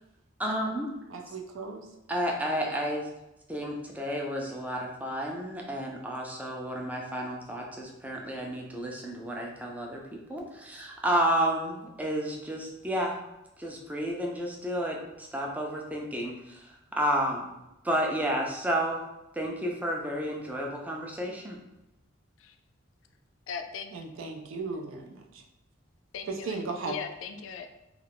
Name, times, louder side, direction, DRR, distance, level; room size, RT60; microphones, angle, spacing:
voice 1, 0.4-0.9 2.1-3.1 3.5-13.2 13.6-16.7 16.9-17.5 17.8-19.0 19.3-21.6, equal, 10° right, 0 dB, 0.4 m, -31 dB
voice 2, 1.1-1.9 23.9-25.4 26.3-27.0, right 3 dB, 80° right, 3 dB, 0.4 m, -36 dB
voice 3, 23.5-23.9 26.1-26.6 26.9-27.7, left 6 dB, 70° left, 5 dB, 0.3 m, -38 dB
2.3 x 2.3 x 3.4 m, 0.92 s
head